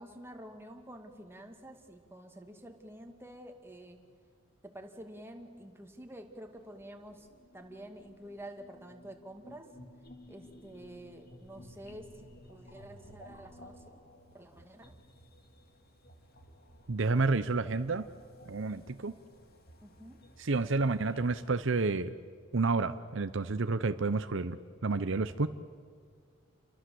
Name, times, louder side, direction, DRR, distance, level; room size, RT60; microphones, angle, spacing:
voice 1, 0.0-4.0 4.6-7.3 7.5-9.7 10.3-14.0 14.3-14.9 19.8-20.2, right 1 dB, 10° right, 4 dB, 2.3 m, -49 dB
sound 1, 6.5-21.9, left 1 dB, 50° left, 2.3 m, -56 dB
voice 2, 16.9-18.0 18.5-19.1 20.4-22.1 22.5-25.5, right 3 dB, 65° right, 11 dB, 0.8 m, -30 dB
29.5 x 23.0 x 7.8 m, 2.1 s
head